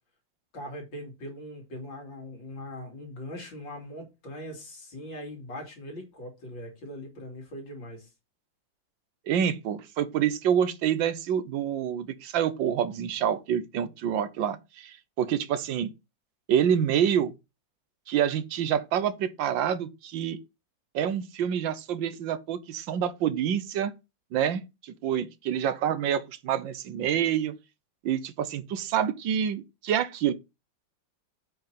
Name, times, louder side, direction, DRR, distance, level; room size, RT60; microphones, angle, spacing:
voice 1, 0.5-8.1, left 1 dB, 80° left, 3.5 m, -41 dB
voice 2, 9.3-15.9 16.5-17.3 18.1-20.4 20.9-23.9 24.3-27.5 28.0-30.3, right 9 dB, 80° right, 1.6 m, -27 dB
7.9 x 4.7 x 5.7 m
omnidirectional pair, 2.0 m